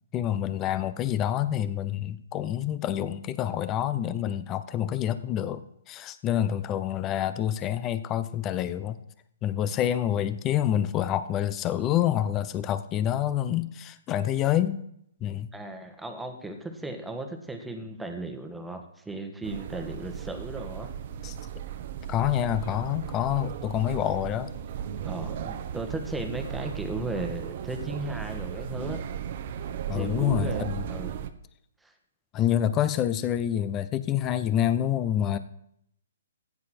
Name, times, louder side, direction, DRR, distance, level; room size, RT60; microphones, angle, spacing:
voice 1, 0.1-9.0 9.4-14.8 15.2-15.5 21.2-21.3 22.1-24.5 29.9-30.8 32.3-35.4, left 11 dB, 25° left, 13 dB, 0.9 m, -27 dB
voice 2, 15.5-20.9 25.0-29.0 29.9-31.2 31.8-31.9, right 2 dB, 5° right, 5 dB, 1.6 m, -36 dB
sound 1, 19.4-31.3, right 9 dB, 50° right, 1.0 m, -36 dB
15.0 x 9.6 x 4.4 m, 0.73 s
hypercardioid pair, 140°, 0 cm